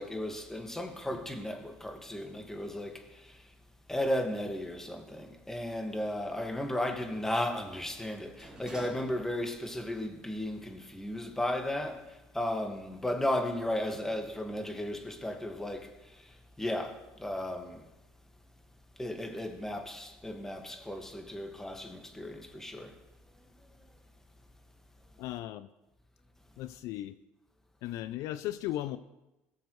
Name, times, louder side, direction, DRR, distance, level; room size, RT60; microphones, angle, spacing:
voice 1, 0.0-3.0 3.9-12.0 12.3-15.9 16.6-17.8 19.0-22.9, left 1 dB, 10° left, 1.7 m, -35 dB
Sliding door, 5.6-9.7 10.1-10.2, right 1 dB, 10° right, 4.1 m, -53 dB
voice 2, 25.2-25.7 26.6-27.2 27.8-29.0, left 14 dB, 70° left, 0.4 m, -36 dB
17.5 x 7.3 x 3.2 m
supercardioid pair, 85°, 6 cm